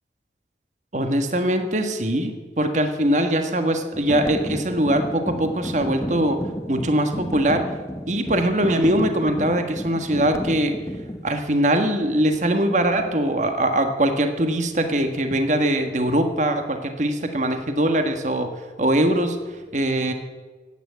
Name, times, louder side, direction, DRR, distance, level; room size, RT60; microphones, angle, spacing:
voice 1, 0.9-6.4 6.7-7.7 8.1-10.8 11.2-18.5 18.8-19.4 19.7-20.1, right 1 dB, 40° right, 6 dB, 1.4 m, -22 dB
sound 1, 3.9-11.3, equal, 15° left, 0.8 m, -32 dB
15.5 x 9.2 x 8.2 m, 1.3 s
head